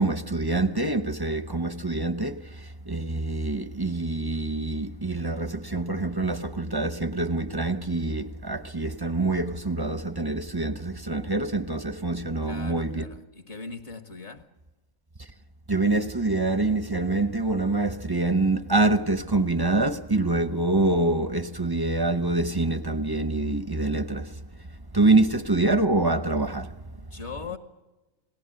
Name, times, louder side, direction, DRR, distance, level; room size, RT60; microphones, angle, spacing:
voice 1, 0.0-13.0 15.7-24.4 24.9-26.8, right 2 dB, 20° right, 0.7 m, -25 dB
voice 2, 12.4-14.5 26.9-27.6, left 5 dB, 55° left, 1.7 m, -40 dB
29.0 x 19.0 x 7.8 m
omnidirectional pair, 1.4 m